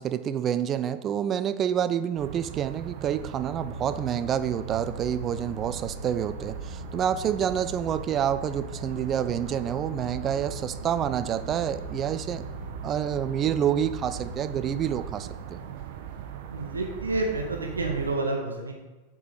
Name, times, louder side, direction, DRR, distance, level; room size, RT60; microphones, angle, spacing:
voice 1, 0.0-12.5 12.8-15.6, right 9 dB, 30° right, 13 dB, 0.3 m, -28 dB
sound 1, 2.2-18.2, right 9 dB, 50° right, 0.7 m, -40 dB
Boat Water vehicle, 3.5-15.0, left 3 dB, 60° left, 1.1 m, -42 dB
voice 2, 16.5-18.7, right 2 dB, 75° right, 1 dB, 0.9 m, -29 dB
8.0 x 3.7 x 4.8 m, 1.2 s
figure-of-eight pair, 90°, 0 cm